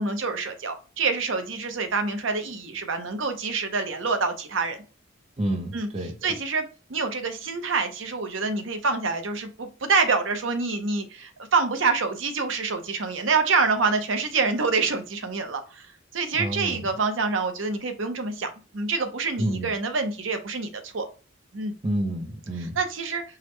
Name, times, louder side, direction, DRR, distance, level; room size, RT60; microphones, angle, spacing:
voice 1, 0.0-4.8 5.7-5.9 6.2-6.6 6.9-18.5 18.7-21.1 21.5-21.7 22.6-23.2, right 4 dB, 75° right, 0.7 m, -26 dB
voice 2, 5.4-6.3 16.3-16.9 19.4-19.7 21.8-22.7, right 1 dB, 30° right, 0.6 m, -29 dB
4.7 x 2.1 x 3.2 m
head